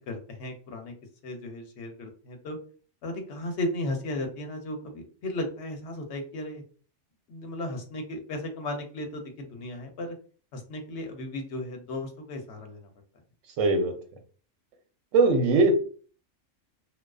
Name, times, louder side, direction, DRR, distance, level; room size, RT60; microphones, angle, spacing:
voice 1, 0.1-0.9 1.2-2.6 3.0-6.6 7.3-10.2 10.5-12.9, left 1 dB, 65° left, 4 dB, 0.8 m, -35 dB
voice 2, 13.6-14.0 15.1-15.7, right 3 dB, 80° right, 5 dB, 0.9 m, -20 dB
2.3 x 2.3 x 2.3 m, 0.40 s
omnidirectional pair, 1.3 m